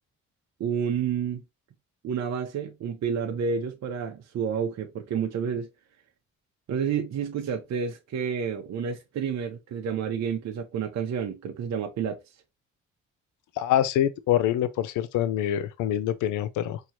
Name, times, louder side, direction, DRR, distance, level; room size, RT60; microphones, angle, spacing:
voice 1, 0.6-1.4 2.0-5.7 6.7-12.2, right 7 dB, 60° right, 0.8 m, -30 dB
voice 2, 13.6-16.8, left 11 dB, 85° left, 0.5 m, -25 dB
4.5 x 2.8 x 2.9 m
cardioid pair, 90°, 30 cm